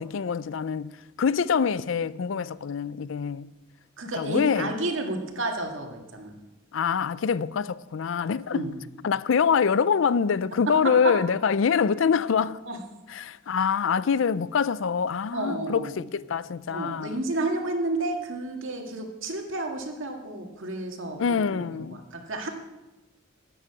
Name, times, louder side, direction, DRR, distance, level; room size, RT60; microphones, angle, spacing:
voice 1, 0.0-3.5 4.2-4.7 6.7-8.7 9.0-12.6 13.1-17.2 21.2-22.0, left 6 dB, 65° left, 0.4 m, -25 dB
voice 2, 4.0-6.3 8.5-8.8 10.8-11.1 12.7-12.8 15.3-16.0 16.7-22.5, right 2 dB, 70° right, 1.9 m, -31 dB
13.0 x 8.9 x 5.9 m
head